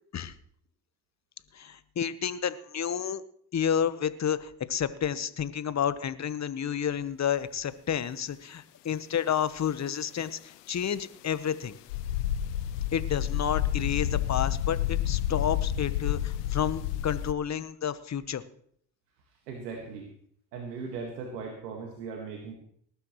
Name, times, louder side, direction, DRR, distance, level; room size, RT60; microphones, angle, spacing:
voice 1, 1.5-3.2 3.5-11.7 12.9-18.4, left 8 dB, 35° left, 14 dB, 1.1 m, -30 dB
sound 1, 11.9-17.3, left 11 dB, 90° left, 0.7 m, -29 dB
voice 2, 19.5-20.1 20.5-22.6, right 5 dB, 90° right, 2 dB, 1.8 m, -38 dB
19.5 x 12.0 x 3.1 m, 0.65 s
hypercardioid pair, 60°, 46 cm